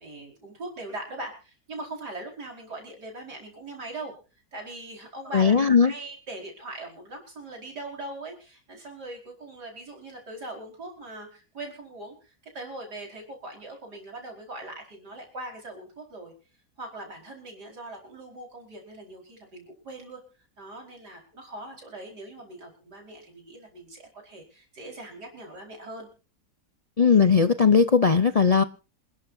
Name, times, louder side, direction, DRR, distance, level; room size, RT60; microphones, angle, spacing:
voice 1, 0.0-4.1 4.5-16.3 16.8-20.2 20.6-26.1, right 2 dB, 90° right, 1 dB, 5.4 m, -41 dB
voice 2, 5.3-5.9 27.0-28.6, left 5 dB, 65° left, 10 dB, 0.3 m, -18 dB
27.5 x 11.5 x 2.7 m, 0.36 s
omnidirectional pair, 1.7 m